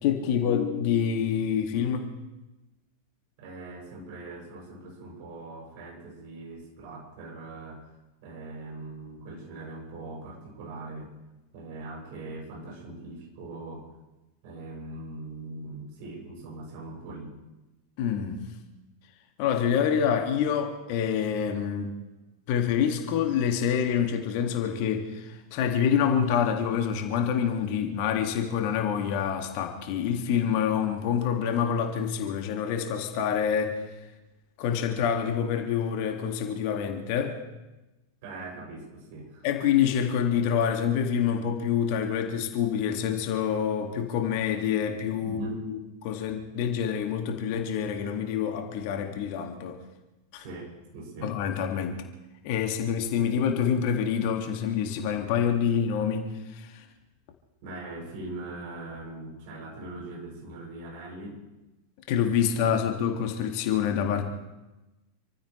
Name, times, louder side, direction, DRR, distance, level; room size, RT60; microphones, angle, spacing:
voice 1, 0.0-2.1 18.0-18.5 19.4-22.0 22.5-33.8 34.6-37.4 39.4-49.8 50.3-50.4 51.2-52.0 52.4-56.8 62.1-64.2, left 8 dB, 45° left, 4 dB, 2.2 m, -27 dB
voice 2, 3.4-11.1 11.5-13.9 14.4-17.4 38.2-39.5 45.2-45.6 50.4-51.3 57.6-61.4 62.5-62.6 63.0-63.1, right 2 dB, 50° right, -1 dB, 7.4 m, -41 dB
28.0 x 15.0 x 3.3 m, 1.0 s
figure-of-eight pair, 90°, 0 cm